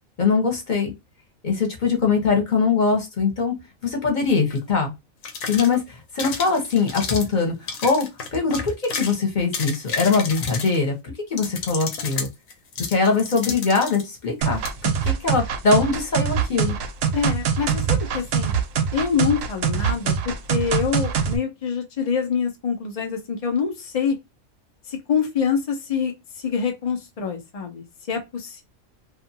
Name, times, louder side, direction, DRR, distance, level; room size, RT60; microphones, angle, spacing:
voice 1, 0.2-0.9 1.4-3.5 3.8-4.9 5.5-12.3 12.9-16.8, left 4 dB, 40° left, 1.0 m, -22 dB
sound 1, 4.5-4.6 5.2-5.8 6.2-7.3 7.7-9.1 9.4-10.9 11.4-14.0 14.6-14.7, left 5 dB, 85° left, 1.2 m, -31 dB
sound 2, 14.4-21.4, right 7 dB, 85° right, 1.0 m, -23 dB
voice 2, 17.1-18.5 18.9-24.2 24.9-28.6, left 6 dB, 55° left, 0.4 m, -25 dB
2.6 x 2.5 x 2.6 m
omnidirectional pair, 1.4 m